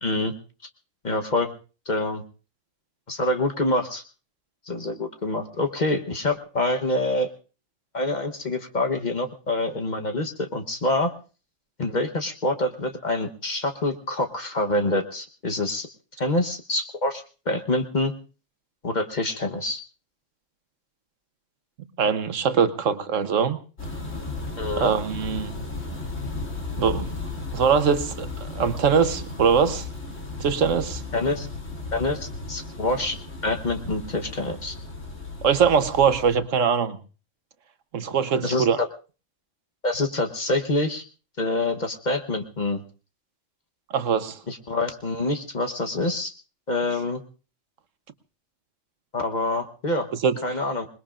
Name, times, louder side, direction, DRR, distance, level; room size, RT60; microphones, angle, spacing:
voice 1, 0.0-0.3 1.0-1.5 1.9-2.2 3.1-4.0 4.7-7.3 7.9-11.1 11.8-15.9 16.2-18.1 18.8-19.8 24.6-24.9 31.1-31.5 31.9-33.2 33.4-34.8 38.4-38.9 39.8-41.0 41.4-42.8 44.5-46.3 46.7-47.2 49.1-50.1 50.4-50.9, left 2 dB, 40° left, 4 dB, 1.2 m, -26 dB
voice 2, 22.0-23.6 24.8-25.5 26.8-27.1 27.5-28.3 28.5-29.8 30.4-31.0 35.4-37.0 37.9-38.8 43.9-44.4 50.2-50.4, right 6 dB, 80° right, 11 dB, 1.4 m, -22 dB
sound 1, 23.8-36.4, left 3 dB, 80° left, 3.0 m, -35 dB
26.5 x 20.5 x 2.5 m, 0.36 s
omnidirectional pair, 1.3 m